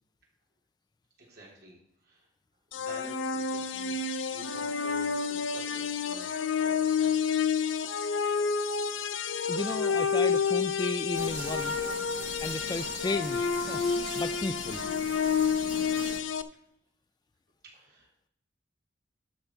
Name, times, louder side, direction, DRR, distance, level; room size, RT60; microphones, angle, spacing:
voice 1, 1.2-2.3 2.7-4.0 4.3-7.1 17.6-18.1, right 1 dB, 55° right, -3 dB, 3.4 m, -50 dB
sound 1, 2.7-16.4, left 6 dB, 80° left, 0.6 m, -29 dB
voice 2, 9.5-11.9 12.4-14.8, left 3 dB, 20° left, 12 dB, 0.3 m, -34 dB
sound 2, 11.1-16.2, right 4 dB, 85° right, 1.2 m, -42 dB
12.5 x 5.6 x 4.5 m, 0.72 s
head